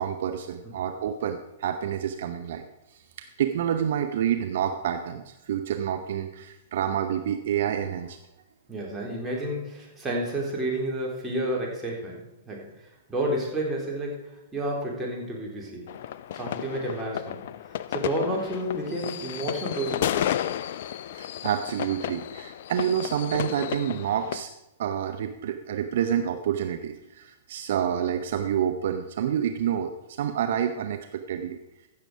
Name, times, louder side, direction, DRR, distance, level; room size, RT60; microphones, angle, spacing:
voice 1, 0.0-2.6 2.9-3.0 3.4-8.2 21.2-24.5 24.8-31.6, right 9 dB, 55° right, 7 dB, 0.7 m, -28 dB
voice 2, 8.7-12.7 13.1-16.0 16.3-17.4 17.9-20.5, right 1 dB, 10° right, -3 dB, 3.6 m, -31 dB
sound 1, 15.9-24.4, left 11 dB, 55° left, 0.4 m, -32 dB
15.0 x 6.8 x 4.9 m, 0.91 s
figure-of-eight pair, 105°, 0 cm